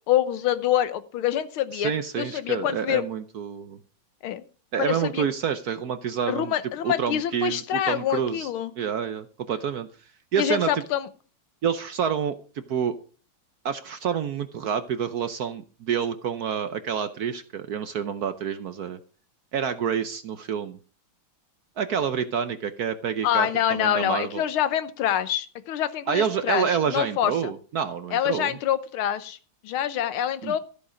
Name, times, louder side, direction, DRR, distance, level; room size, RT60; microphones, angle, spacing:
voice 1, 0.1-3.0 4.2-4.4 4.8-5.2 6.3-8.7 10.4-11.1 23.2-27.5 28.1-29.4 29.6-30.6, left 11 dB, 85° left, 14 dB, 1.7 m, -26 dB
voice 2, 1.7-3.8 4.7-6.5 6.8-8.5 8.8-9.9 10.3-10.7 11.6-12.3 12.7-13.0 13.6-19.0 19.5-20.8 21.8-24.4 26.1-28.6 30.4-30.6, right 7 dB, 65° right, 11 dB, 1.0 m, -28 dB
14.0 x 8.4 x 5.0 m, 0.39 s
omnidirectional pair, 2.3 m